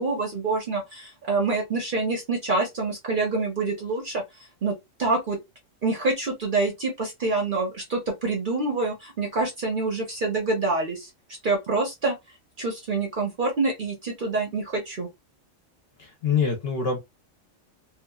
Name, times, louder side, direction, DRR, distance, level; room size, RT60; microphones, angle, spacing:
voice 1, 0.0-4.2 4.6-5.4 5.8-11.1 11.4-12.1 12.6-15.1, right 3 dB, 45° right, 0.8 m, -26 dB
voice 2, 16.0-17.0, left 6 dB, 55° left, 0.9 m, -25 dB
2.9 x 2.3 x 2.2 m
omnidirectional pair, 1.4 m